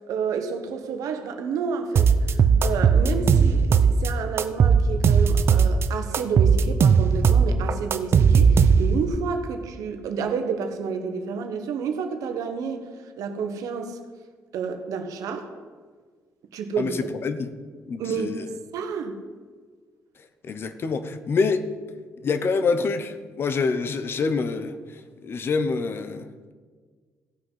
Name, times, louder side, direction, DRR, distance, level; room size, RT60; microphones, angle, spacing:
voice 1, 0.1-12.8 13.2-14.0 14.5-15.5 16.5-17.0 18.0-18.4 18.7-19.2, right 5 dB, 80° right, 6 dB, 1.3 m, -30 dB
sound 1, 2.0-4.1 4.4-5.9 6.1-9.1, right 6 dB, 45° right, 0.6 m, -17 dB
voice 2, 16.8-17.5 17.9-18.5 20.4-21.7 22.2-24.8 25.2-26.5, left 4 dB, 40° left, 10 dB, 0.8 m, -26 dB
15.5 x 5.9 x 5.6 m, 1.5 s
cardioid pair, 130°, 6 cm